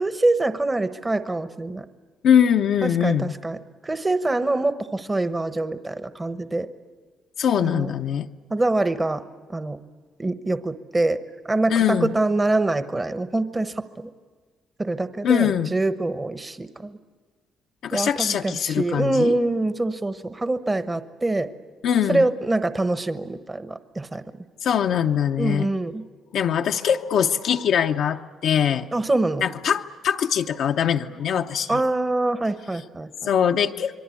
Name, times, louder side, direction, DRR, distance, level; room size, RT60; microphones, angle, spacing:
voice 1, 0.0-1.8 2.8-3.6 3.8-6.7 7.6-7.9 8.5-9.2 9.5-9.8 10.2-14.1 14.8-16.9 17.9-21.5 22.1-24.2 25.4-26.0 28.9-29.4 31.7-33.1, right 2 dB, 20° right, 11 dB, 1.0 m, -25 dB
voice 2, 2.2-3.3 7.4-8.3 11.7-12.1 15.2-15.7 17.8-19.3 21.8-22.3 24.6-25.7 26.3-28.9 29.4-31.8 33.2-34.0, left 8 dB, 75° left, 4 dB, 0.8 m, -22 dB
27.0 x 22.5 x 8.5 m, 1.4 s
cardioid pair, 90°, 0 cm